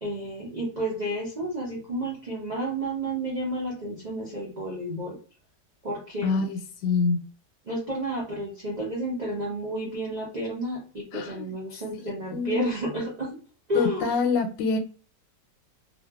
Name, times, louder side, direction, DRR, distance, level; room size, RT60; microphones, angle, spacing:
voice 1, 0.0-5.2 5.8-6.4 7.7-13.4 13.7-14.1, right 1 dB, 65° right, -4 dB, 0.4 m, -31 dB
voice 2, 6.2-7.2 11.1-11.5 12.3-12.7 13.7-14.8, left 4 dB, 85° left, 3 dB, 1.3 m, -26 dB
2.7 x 2.4 x 2.2 m, 0.38 s
omnidirectional pair, 1.9 m